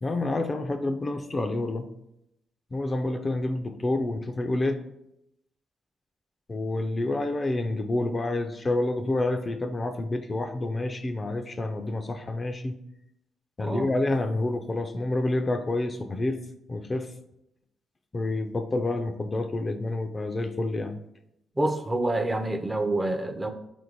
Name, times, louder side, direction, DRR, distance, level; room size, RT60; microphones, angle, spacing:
voice 1, 0.0-1.9 2.7-4.8 6.5-12.8 13.6-16.4 16.7-17.1 18.1-21.0, left 2 dB, 35° left, 6 dB, 0.4 m, -28 dB
voice 2, 21.6-23.5, right 1 dB, 20° right, 8 dB, 0.5 m, -27 dB
4.4 x 2.6 x 4.4 m, 0.81 s
supercardioid pair, 60°, 0 cm